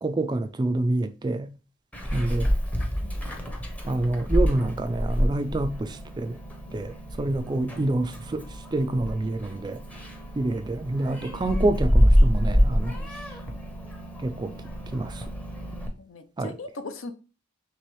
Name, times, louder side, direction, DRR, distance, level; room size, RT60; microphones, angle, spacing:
voice 1, 0.0-1.5 2.1-2.5 3.9-6.4 6.7-8.4 8.7-9.8 10.4-13.0 14.2-14.5 14.9-15.2 16.4-16.5, right 2 dB, 20° right, 0.3 m, -27 dB
Meow, 1.9-15.9, equal, 5° left, 0.7 m, -27 dB
voice 2, 16.0-17.1, left 2 dB, 75° left, 0.6 m, -40 dB
3.4 x 3.1 x 4.5 m
head